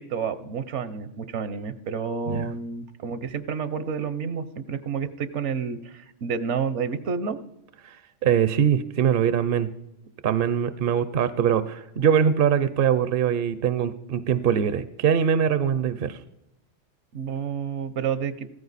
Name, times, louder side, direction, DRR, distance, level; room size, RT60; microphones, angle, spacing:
voice 1, 0.0-7.4 17.1-18.5, right 6 dB, 75° right, 13 dB, 1.1 m, -30 dB
voice 2, 8.2-9.7 10.2-16.2, right 8 dB, 55° right, 14 dB, 0.7 m, -22 dB
16.0 x 14.0 x 4.1 m, 0.89 s
omnidirectional pair, 1.2 m